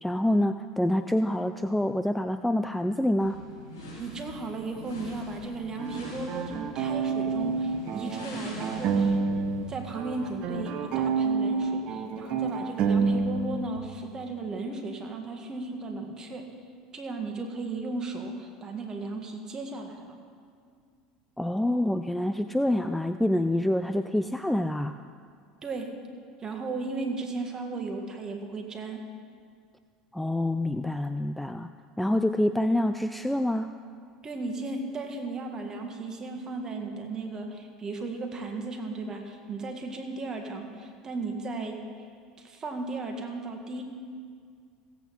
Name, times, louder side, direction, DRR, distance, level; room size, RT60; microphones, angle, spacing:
voice 1, 0.0-3.4 21.4-25.0 30.1-31.7 32.0-33.7, left 1 dB, 5° left, 9 dB, 0.4 m, -26 dB
sound 1, 3.2-10.8, left 1 dB, 80° left, 3.3 m, -44 dB
voice 2, 4.0-9.4 9.7-16.5 16.9-20.2 25.6-25.9 26.4-29.0 34.2-41.8 42.4-43.8, right 3 dB, 30° right, 4 dB, 1.8 m, -35 dB
sound 2, 5.8-9.7 9.9-13.8, right 4 dB, 55° right, 0.9 m, -28 dB
16.5 x 8.1 x 4.3 m, 2.1 s
hypercardioid pair, 80°, 2 cm